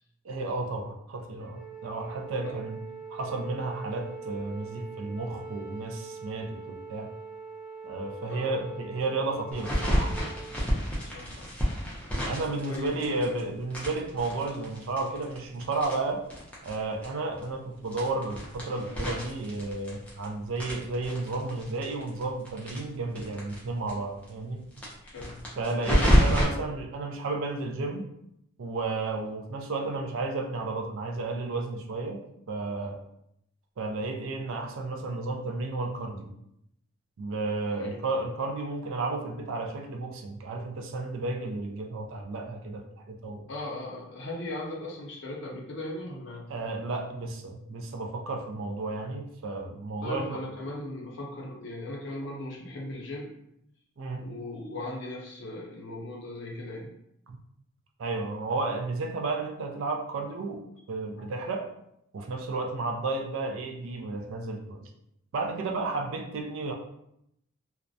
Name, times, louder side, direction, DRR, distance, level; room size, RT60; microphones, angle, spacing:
voice 1, 0.2-2.8 3.1-7.1 7.8-10.1 12.3-16.2 16.6-24.6 25.6-28.0 28.6-32.2 32.5-33.0 33.8-36.3 37.2-43.4 46.5-50.4 54.0-54.3 57.3-57.4 58.0-60.6 60.9-61.7 62.1-64.9 65.3-66.7, right 3 dB, 70° right, 3 dB, 0.4 m, -32 dB
Wind instrument woodwind instrument, 1.4-10.5, right 5 dB, 25° right, 1.1 m, -43 dB
voice 2, 8.3-8.7 11.0-11.5 12.7-13.4 25.0-25.4 25.7-26.0 37.8-38.0 43.5-46.5 50.0-53.3 54.2-56.9, left 1 dB, 60° left, -2 dB, 0.6 m, -38 dB
sound 1, 9.5-13.4 13.7-16.7 17.0-17.1 17.4-17.5 17.9-20.3 20.6-23.6 23.9-24.0 24.2-24.3 24.7-26.4, equal, 5° left, 0.4 m, -28 dB
2.3 x 2.0 x 2.6 m, 0.77 s
head